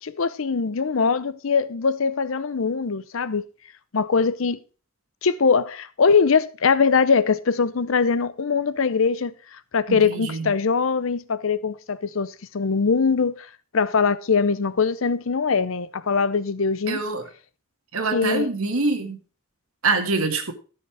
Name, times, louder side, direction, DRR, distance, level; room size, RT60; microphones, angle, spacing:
voice 1, 0.0-3.4 3.9-4.6 5.2-17.0 18.1-18.5, left 5 dB, 70° left, 0.6 m, -22 dB
voice 2, 9.9-10.5 16.9-17.3 17.9-19.2 19.8-20.5, right 3 dB, 85° right, 1.8 m, -25 dB
13.0 x 6.7 x 4.8 m
head